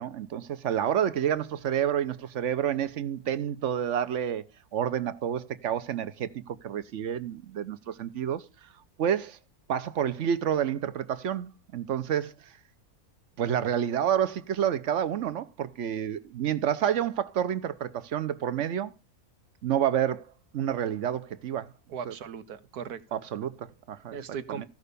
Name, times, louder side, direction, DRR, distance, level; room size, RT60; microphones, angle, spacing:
voice 1, 0.0-4.4 4.7-8.7 9.0-9.4 9.7-12.5 13.4-18.9 19.6-20.3 20.5-21.7 22.1-22.2 23.1-24.2 24.6-24.7, right 9 dB, 60° right, 1.1 m, -29 dB
voice 2, 21.9-23.2 24.1-24.7, right 7 dB, 85° right, 1.5 m, -38 dB
15.0 x 5.5 x 6.7 m
omnidirectional pair, 1.6 m